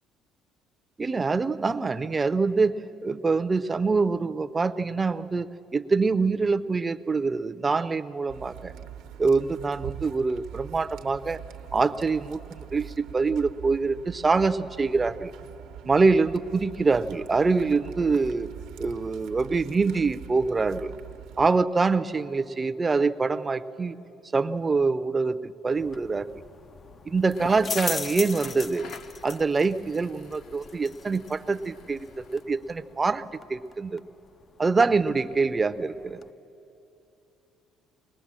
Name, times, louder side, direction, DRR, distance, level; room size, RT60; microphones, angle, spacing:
voice 1, 1.0-2.7 3.0-5.5 5.7-8.7 9.2-11.4 11.7-15.3 15.9-18.5 18.8-20.9 21.4-24.0 24.3-26.4 27.1-28.9 29.2-32.1 32.3-34.0 34.6-36.2, right 4 dB, 20° right, 12 dB, 0.5 m, -25 dB
sound 1, 8.3-21.5, right 9 dB, 80° right, 0.9 m, -43 dB
sound 2, 25.7-36.3, left 5 dB, 35° left, 0.4 m, -40 dB
Crackle, 27.2-32.5, left 5 dB, 65° left, 0.9 m, -47 dB
21.0 x 19.5 x 7.5 m, 2.9 s
cardioid pair, 120°, 0 cm